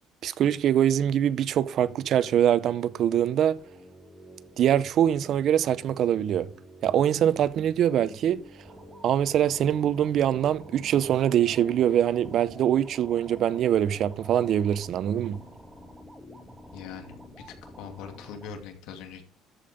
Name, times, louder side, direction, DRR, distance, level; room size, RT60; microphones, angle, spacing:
voice 1, 0.2-3.6 4.6-6.5 6.8-8.4 9.0-15.4, right 10 dB, 50° right, 0.6 m, -23 dB
sound 1, 3.6-18.3, equal, 10° left, 2.1 m, -50 dB
sound 2, 8.6-18.6, right 1 dB, 10° right, 1.9 m, -51 dB
voice 2, 16.7-19.2, left 7 dB, 80° left, 2.7 m, -42 dB
13.5 x 5.3 x 5.2 m
cardioid pair, 125°, 0 cm